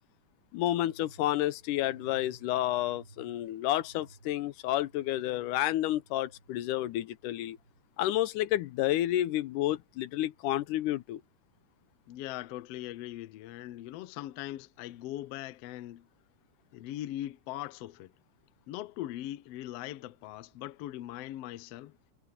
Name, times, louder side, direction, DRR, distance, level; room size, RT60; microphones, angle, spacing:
voice 1, 0.5-7.6 8.0-11.2, left 14 dB, 90° left, 2.3 m, -30 dB
sound 1, 0.6-7.9 8.4-9.2 9.9-10.4 11.4-11.5, right 2 dB, 35° right, 5.3 m, -59 dB
voice 2, 12.1-16.1 16.7-18.1 18.7-21.9, left 14 dB, 70° left, 1.6 m, -40 dB
omnidirectional pair, 3.5 m